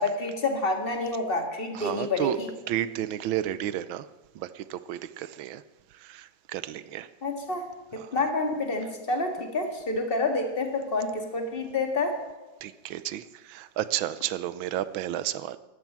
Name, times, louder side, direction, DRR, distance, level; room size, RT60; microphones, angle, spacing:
voice 1, 0.0-2.5 7.2-7.6 7.9-12.2, left 3 dB, 30° left, 4 dB, 2.0 m, -28 dB
voice 2, 1.7-2.4 2.7-4.1 4.3-5.6 5.9-7.1 7.9-8.2 12.6-15.6, right 12 dB, 80° right, 15 dB, 1.5 m, -32 dB
14.0 x 11.5 x 7.4 m, 1.1 s
omnidirectional pair, 2.2 m